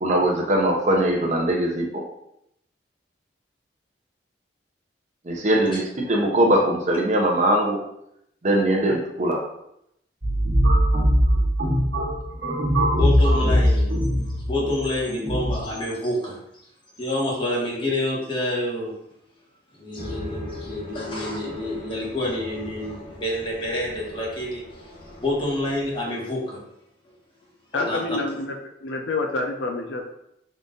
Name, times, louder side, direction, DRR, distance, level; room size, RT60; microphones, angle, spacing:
voice 1, 0.0-2.0 5.3-7.8 8.4-9.4, right 1 dB, 40° right, 0 dB, 0.6 m, -21 dB
sound 1, 10.2-15.6, equal, 60° right, 1.2 m, -21 dB
voice 2, 13.0-13.9 14.5-16.4 17.0-18.9 19.7-26.6 27.7-28.0, left 1 dB, 25° left, -4 dB, 1.1 m, -28 dB
sound 2, 20.0-26.0, left 1 dB, 45° left, 0.9 m, -39 dB
voice 3, 27.7-28.5 28.8-30.0, left 2 dB, 70° left, 2 dB, 0.6 m, -27 dB
3.8 x 2.5 x 3.8 m, 0.77 s
head